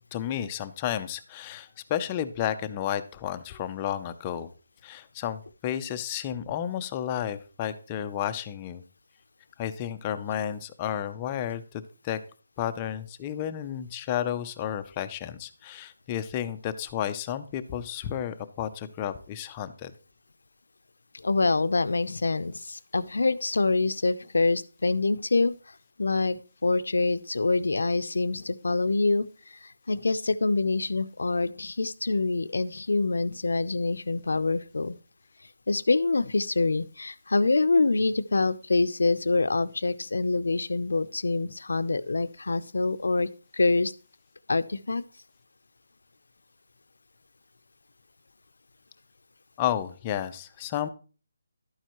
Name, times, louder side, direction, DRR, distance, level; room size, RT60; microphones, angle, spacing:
voice 1, 0.1-4.5 4.8-8.8 9.6-12.2 12.6-19.9 49.6-50.9, left 10 dB, 15° left, 9 dB, 0.5 m, -32 dB
voice 2, 21.2-25.6 26.0-29.3 29.6-34.9 35.7-43.9 44.5-45.0, left 3 dB, 85° left, 15 dB, 0.6 m, -25 dB
11.5 x 9.1 x 3.0 m, 0.36 s
hypercardioid pair, 175°, 0 cm